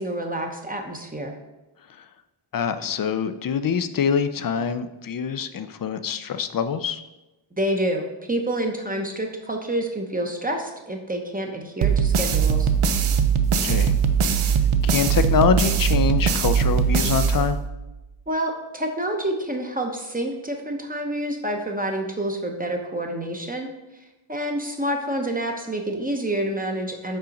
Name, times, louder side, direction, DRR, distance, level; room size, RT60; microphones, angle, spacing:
voice 1, 0.0-1.3 7.6-12.7 18.3-23.7 24.3-27.2, right 1 dB, 15° right, 2 dB, 0.8 m, -28 dB
voice 2, 2.5-7.0 13.6-13.9 14.8-17.6, left 7 dB, 45° left, 11 dB, 0.5 m, -24 dB
sound 1, 11.8-17.9, right 7 dB, 80° right, 0.6 m, -21 dB
5.6 x 3.7 x 5.2 m, 1.0 s
wide cardioid pair, 80°, 49 cm